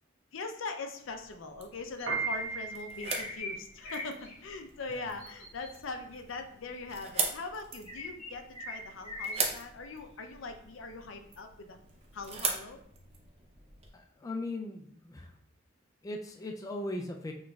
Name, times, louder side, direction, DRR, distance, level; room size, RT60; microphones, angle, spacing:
voice 1, 0.3-11.8 12.1-12.8, left 3 dB, 80° left, 6 dB, 0.5 m, -41 dB
sound 1, 1.0-13.9, right 4 dB, 30° right, 0.6 m, -40 dB
Piano, 1.9-12.3, right 5 dB, 80° right, 0.8 m, -40 dB
sound 2, 2.0-2.1 3.0-3.6 3.8-4.3 5.2-5.7 7.8-9.4, left 2 dB, 35° left, 0.9 m, -40 dB
voice 2, 13.9-15.3 16.0-17.3, left 2 dB, 15° left, 2 dB, 0.3 m, -38 dB
6.0 x 3.0 x 2.3 m, 0.66 s
head